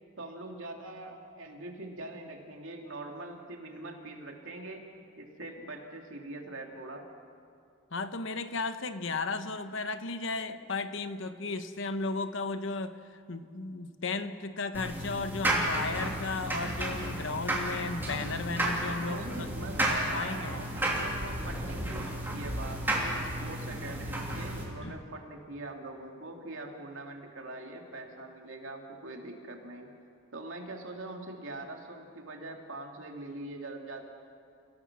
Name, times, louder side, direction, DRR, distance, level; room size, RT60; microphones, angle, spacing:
voice 1, 0.2-4.9 5.2-7.0 19.0-29.9 30.3-34.0, right 2 dB, 70° right, 2 dB, 2.8 m, -43 dB
voice 2, 7.9-19.5 19.9-20.6 24.8-25.0, left 3 dB, 60° left, 10 dB, 1.0 m, -35 dB
sound 1, 14.7-24.6, right 1 dB, 10° right, 3.1 m, -32 dB
30.0 x 18.5 x 6.1 m, 2.4 s
head